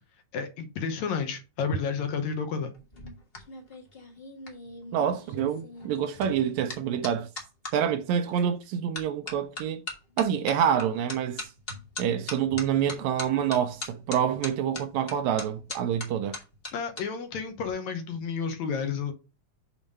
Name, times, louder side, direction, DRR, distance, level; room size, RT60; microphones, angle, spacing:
voice 1, 0.3-2.7 16.7-19.1, left 6 dB, 70° left, 2.1 m, -31 dB
sound 1, 2.7-7.7 8.4-8.6 8.9-17.0 17.3-17.7, left 2 dB, 50° left, 0.7 m, -40 dB
voice 2, 4.9-7.3 7.7-9.8 10.2-11.5 12.0-16.4, right 9 dB, 80° right, 1.7 m, -27 dB
7.1 x 3.3 x 5.4 m
omnidirectional pair, 3.5 m